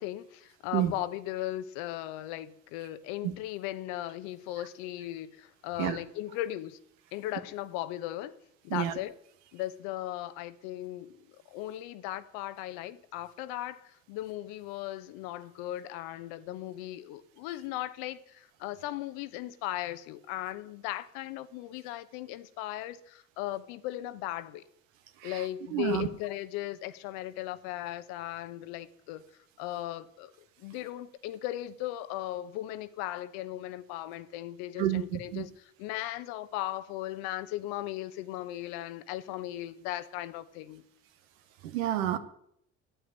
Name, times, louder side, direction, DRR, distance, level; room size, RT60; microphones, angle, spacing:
voice 1, 0.0-6.8 7.1-8.4 8.6-9.1 9.5-11.2 11.5-24.6 25.2-29.2 29.6-40.8, left 14 dB, 70° left, 1.0 m, -37 dB
voice 2, 25.7-26.1 34.8-35.4 41.6-42.2, right 12 dB, 80° right, 1.3 m, -29 dB
9.0 x 8.4 x 9.5 m
hypercardioid pair, 60°, 39 cm